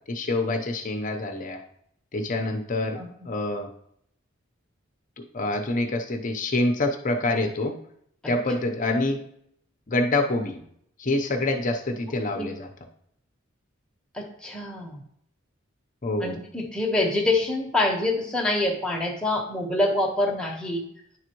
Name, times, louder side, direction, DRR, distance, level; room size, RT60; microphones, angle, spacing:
voice 1, 0.1-1.6 2.1-3.0 3.2-3.7 5.2-7.8 8.3-9.3 9.9-10.6 11.0-12.7 16.0-16.4, left 2 dB, 40° left, 5 dB, 0.8 m, -26 dB
voice 2, 14.1-15.0 16.2-20.8, left 2 dB, 5° left, -1 dB, 1.1 m, -26 dB
10.0 x 4.0 x 3.0 m, 0.68 s
head